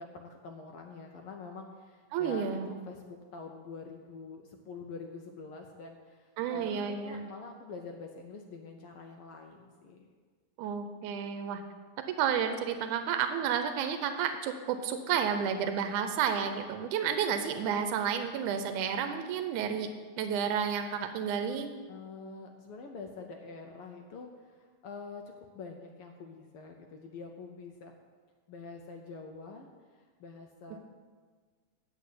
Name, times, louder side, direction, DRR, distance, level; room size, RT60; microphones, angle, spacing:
voice 1, 0.0-10.1 21.9-27.9 28.5-30.8, left 4 dB, 80° left, 2 dB, 1.2 m, -46 dB
voice 2, 2.1-2.7 6.4-7.2 10.6-11.6 12.1-19.9 20.2-21.7, right 7 dB, 90° right, 8 dB, 2.1 m, -31 dB
7.9 x 6.6 x 8.3 m, 1.5 s
omnidirectional pair, 3.4 m